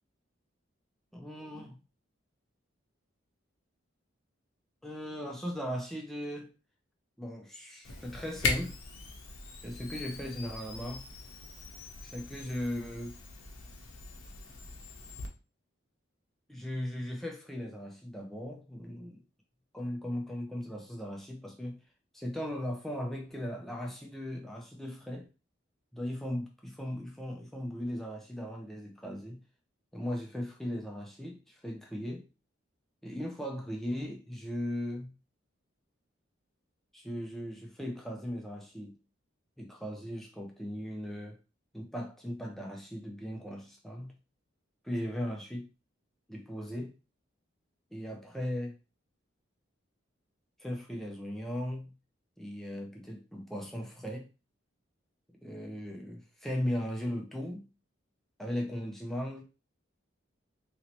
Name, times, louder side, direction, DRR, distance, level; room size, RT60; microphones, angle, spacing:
voice 1, 1.1-1.8 4.8-6.5 7.2-8.8 9.6-11.1 12.0-13.1 16.5-19.2 19.7-21.8 22.1-25.3 25.9-29.4 29.9-32.3 33.0-35.2 36.9-39.0 39.6-41.4 41.7-44.1 44.8-45.7 46.3-46.9 47.9-48.7 50.6-51.9 52.4-54.3 55.4-57.7 58.4-59.4, equal, ahead, 0.5 m, -38 dB
Camera, 7.8-15.3, left 4 dB, 90° left, 0.8 m, -39 dB
3.1 x 2.7 x 2.9 m
head